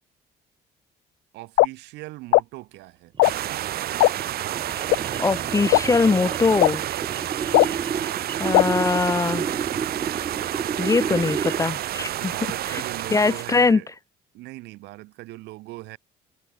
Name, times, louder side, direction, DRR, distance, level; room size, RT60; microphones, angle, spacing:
voice 1, 1.3-3.1 12.1-13.9 14.3-16.0, right 20 dB, 90° right, 8.0 m, -40 dB
sound 1, 1.6-1.7 2.3-2.4 3.2-3.3 4.0-4.1 4.9-5.0 5.7-5.8 6.6-6.7 7.5-7.7 8.5-8.6, left 19 dB, 75° left, 0.4 m, -15 dB
sound 2, 3.1-11.8, right 6 dB, 30° right, 1.0 m, -31 dB
sound 3, 3.2-13.7, right 13 dB, 65° right, 3.3 m, -30 dB
voice 2, 5.2-6.8 8.4-9.4 10.8-12.3 12.7-12.8 13.1-13.8, left 4 dB, 20° left, 0.5 m, -22 dB
cardioid pair, 110°, 17 cm